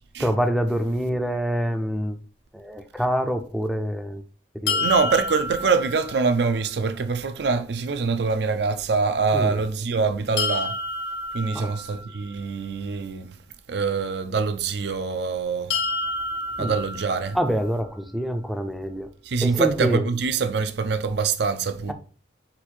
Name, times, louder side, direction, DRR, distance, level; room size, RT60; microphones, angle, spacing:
voice 1, 0.2-2.2 2.5-4.2 4.5-4.8 9.3-9.6 11.5-11.8 16.6-16.7 17.3-19.1 19.4-20.1, equal, ahead, 0.4 m, -26 dB
sound 1, 4.7-6.6 10.4-12.4 15.7-17.7, left 3 dB, 65° left, 0.7 m, -29 dB
voice 2, 4.8-10.8 11.3-13.4 13.7-15.8 16.6-17.4 19.2-21.9, right 4 dB, 60° right, 0.4 m, -24 dB
4.2 x 2.6 x 4.3 m
head